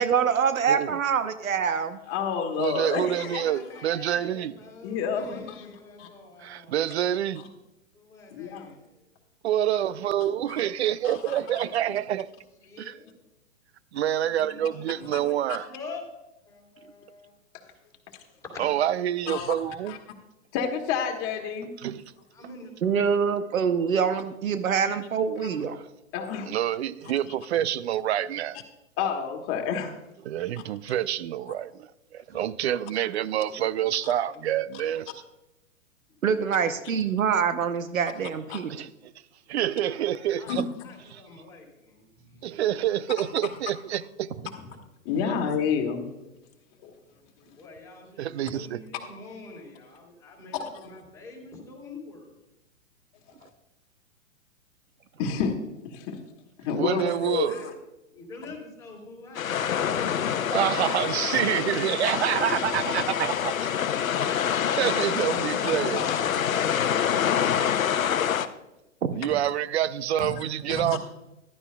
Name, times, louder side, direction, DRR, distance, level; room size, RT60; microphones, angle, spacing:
voice 1, 0.0-2.0 22.8-25.8 36.2-38.7 69.0-69.2, right 7 dB, 80° right, 0.9 m, -25 dB
voice 2, 0.7-1.0 2.6-4.5 6.4-7.4 9.4-12.3 12.8-13.0 13.9-15.7 18.6-20.0 21.8-22.0 26.5-28.6 30.2-35.1 38.7-39.1 39.5-40.7 41.1-41.2 42.4-44.3 48.2-48.8 56.8-57.6 60.5-63.7 64.3-66.1 69.1-71.0, right 11 dB, 55° right, 0.6 m, -27 dB
voice 3, 2.1-3.4 4.8-5.6 8.3-8.7 10.5-10.6 11.0-11.4 15.1-15.2 19.3-19.5 19.9-20.0 20.5-21.7 26.1-26.5 27.0-27.1 29.0-29.9 38.5-38.6 40.5-40.6 45.1-46.1 46.8-46.9 53.4-53.5 55.2-55.6 55.8-56.2 56.6-57.7 64.4-64.5 65.3-66.5 70.2-70.3 70.7-71.0, left 6 dB, 30° left, 1.9 m, -29 dB
voice 4, 3.2-6.8 7.2-7.3 7.9-9.1 11.2-11.7 12.6-13.1 14.2-16.0 16.5-17.3 18.5-18.7 22.3-23.3 32.3-34.5 36.4-36.8 39.5-40.5 40.8-42.4 47.6-52.3 56.9-57.2 57.4-57.7 58.1-60.7 64.5-66.2, left 3 dB, 10° left, 3.6 m, -46 dB
sound 1, 59.3-68.5, left 8 dB, 80° left, 0.8 m, -26 dB
15.0 x 12.0 x 2.3 m
hypercardioid pair, 125°, 40 cm